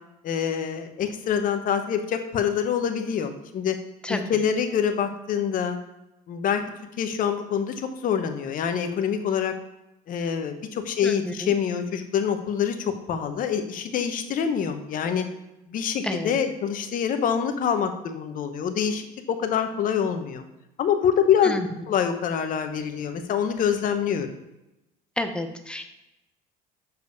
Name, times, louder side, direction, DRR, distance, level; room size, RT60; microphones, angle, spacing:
voice 1, 0.2-3.8 4.1-5.8 6.3-6.6 7.0-9.5 10.1-15.3 15.7-20.4 20.8-21.5 21.9-24.3, left 8 dB, 50° left, 7 dB, 1.0 m, -25 dB
voice 2, 11.0-11.5 16.0-16.3 21.4-21.7 25.2-25.8, left 1 dB, 5° left, 6 dB, 0.8 m, -30 dB
6.8 x 4.7 x 5.3 m, 0.94 s
cardioid pair, 115°, 18 cm